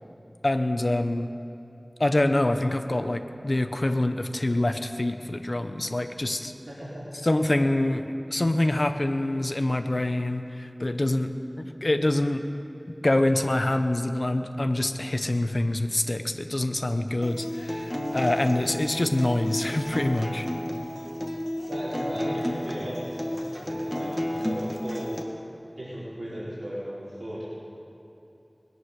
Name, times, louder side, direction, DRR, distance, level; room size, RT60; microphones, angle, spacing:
voice 1, 0.4-1.3 2.0-6.5 7.2-11.3 11.6-12.4 13.0-20.5, left 1 dB, 55° left, 7 dB, 0.9 m, -25 dB
voice 2, 6.7-7.0 21.7-25.1 25.8-27.4, equal, 80° right, -10 dB, 4.0 m, -36 dB
Acoustic guitar, 17.2-25.2, left 1 dB, 10° left, 1.6 m, -32 dB
20.5 x 9.5 x 6.6 m, 2.8 s
wide cardioid pair, 45°, 0 cm